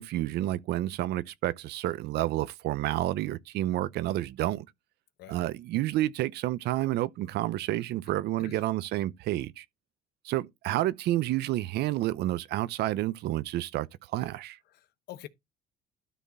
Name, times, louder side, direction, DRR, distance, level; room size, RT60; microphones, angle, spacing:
voice 1, 0.0-4.7 5.3-9.6 10.2-13.9 14.1-14.6, right 15 dB, 75° right, 0.7 m, -30 dB
voice 2, 14.7-15.3, left 13 dB, 75° left, 0.9 m, -45 dB
12.5 x 4.2 x 4.1 m
cardioid pair, 110°, 17 cm